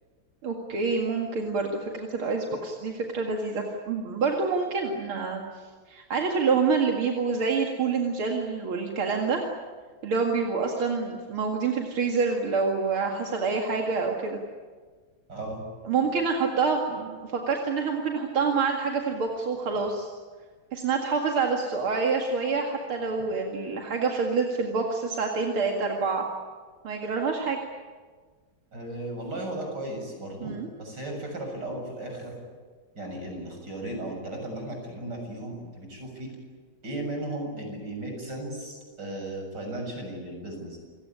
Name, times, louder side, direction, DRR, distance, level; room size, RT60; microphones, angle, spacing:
voice 1, 0.4-5.4 5.9-9.4 10.0-14.4 15.8-20.1 20.7-26.2 26.8-27.6 30.4-30.7, right 4 dB, 80° right, 1 dB, 3.0 m, -27 dB
voice 2, 15.3-15.6 28.7-30.5 30.8-32.4 33.0-36.3 36.8-40.8, right 1 dB, 55° right, 2 dB, 7.6 m, -35 dB
28.5 x 17.5 x 10.0 m, 1.5 s
omnidirectional pair, 2.3 m